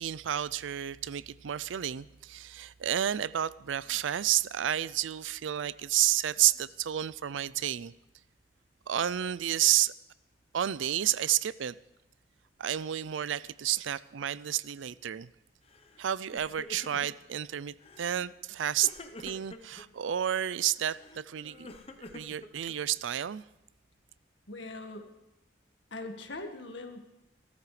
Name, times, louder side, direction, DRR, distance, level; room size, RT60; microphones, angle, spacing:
voice 1, 0.0-7.9 8.9-9.9 10.5-11.8 12.6-15.3 16.0-18.9 19.2-21.8 22.1-23.4, right 11 dB, 90° right, 0.4 m, -30 dB
Crying sobbing, 15.7-16.0 16.3-17.3 17.8-18.3 18.8-19.9 20.7-23.0, left 1 dB, 30° left, 0.9 m, -48 dB
voice 2, 24.5-25.1 25.9-27.0, left 2 dB, 75° left, 1.7 m, -41 dB
28.5 x 13.0 x 3.3 m
head